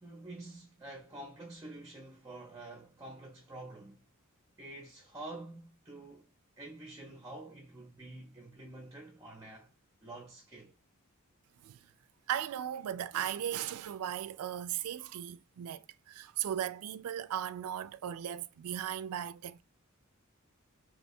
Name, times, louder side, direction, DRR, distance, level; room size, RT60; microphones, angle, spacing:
voice 1, 0.0-4.1 4.6-6.3 6.6-9.7 10.0-10.7, right 2 dB, 15° right, 0.6 m, -48 dB
voice 2, 12.3-19.6, right 10 dB, 80° right, 0.3 m, -37 dB
2.9 x 2.3 x 4.1 m
head